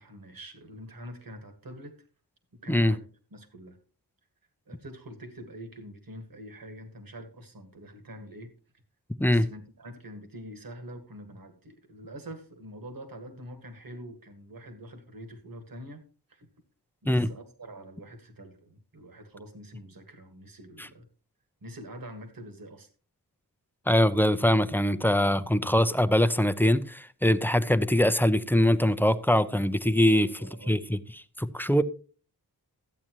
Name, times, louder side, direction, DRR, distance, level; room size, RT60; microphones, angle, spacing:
voice 1, 0.0-1.9 2.6-3.0 3.3-3.8 4.7-8.5 9.2-16.0 16.3-16.5 17.0-21.1 21.6-22.9 30.1-30.8, equal, 55° right, 1.8 m, -45 dB
voice 2, 23.9-30.3 30.7-31.0 31.4-31.8, left 1 dB, 5° left, 0.5 m, -23 dB
13.5 x 8.6 x 3.0 m
wide cardioid pair, 110°, 40 cm